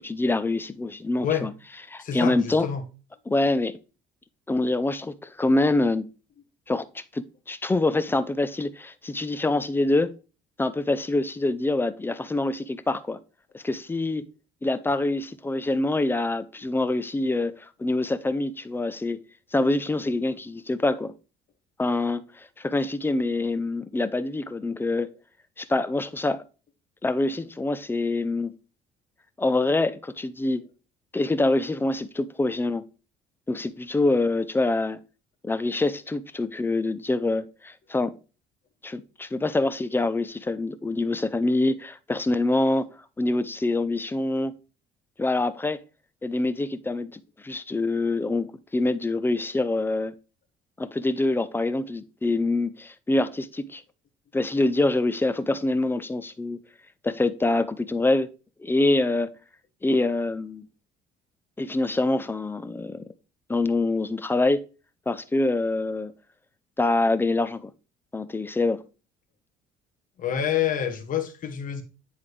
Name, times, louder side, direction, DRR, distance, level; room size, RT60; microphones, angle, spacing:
voice 1, 0.0-1.5 1.9-2.7 3.3-3.8 4.5-6.1 6.7-10.1 10.6-13.2 13.5-14.3 14.6-19.2 19.5-21.1 21.8-25.1 25.6-26.4 27.0-28.5 29.4-30.6 31.1-32.9 33.5-35.0 35.4-38.1 38.8-42.9 43.2-44.5 45.2-45.8 46.2-50.1 50.8-53.8 54.3-56.6 57.0-58.3 58.6-59.3 59.8-60.7 61.6-63.0 63.5-64.6 65.1-66.1 66.8-67.7 68.1-68.8, left 2 dB, 10° left, 0.4 m, -25 dB
voice 2, 2.0-2.8 70.2-71.8, left 9 dB, 55° left, 1.3 m, -27 dB
9.6 x 3.7 x 3.2 m
cardioid pair, 110°, 17 cm